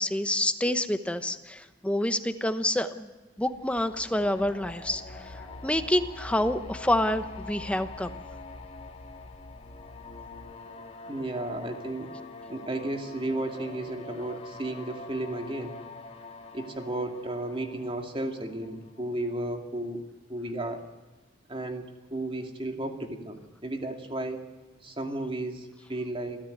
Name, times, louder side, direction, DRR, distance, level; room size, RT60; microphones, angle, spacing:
voice 1, 0.0-3.1 3.4-8.1, left 1 dB, 5° left, 9 dB, 1.0 m, -28 dB
sound 1, 3.4-10.5, equal, 80° left, 3.5 m, -47 dB
sound 2, 3.6-19.4, left 4 dB, 35° left, 1.9 m, -46 dB
voice 2, 11.1-12.1 12.5-15.8 16.5-20.0 20.3-20.8 21.5-21.8 22.1-24.4 24.8-26.4, right 1 dB, 30° right, 4 dB, 2.4 m, -33 dB
27.5 x 14.0 x 9.4 m, 1.3 s
head